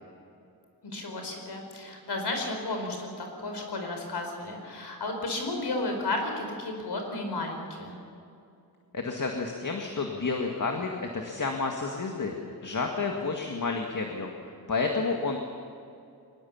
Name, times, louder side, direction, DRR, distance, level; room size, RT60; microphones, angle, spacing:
voice 1, 0.8-8.0, left 2 dB, 90° left, 3 dB, 4.6 m, -33 dB
voice 2, 8.9-15.4, left 4 dB, 50° left, 2 dB, 2.0 m, -30 dB
23.5 x 20.0 x 7.3 m, 2.5 s
wide cardioid pair, 110°, 39 cm